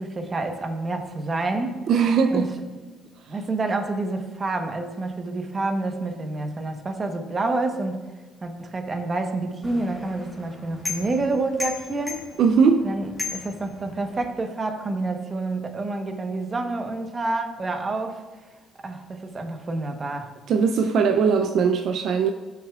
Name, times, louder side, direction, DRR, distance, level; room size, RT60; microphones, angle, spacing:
voice 1, 0.0-1.8 2.3-2.5 3.3-8.0 8.4-12.2 12.8-18.2 18.8-20.3, right 2 dB, 25° right, 1.0 m, -28 dB
voice 2, 1.9-2.5 12.4-12.9 20.5-22.3, right 6 dB, 65° right, 0.4 m, -20 dB
sound 1, 9.6-14.3, left 4 dB, 15° left, 2.0 m, -36 dB
15.5 x 6.8 x 2.4 m
cardioid pair, 125°, 0 cm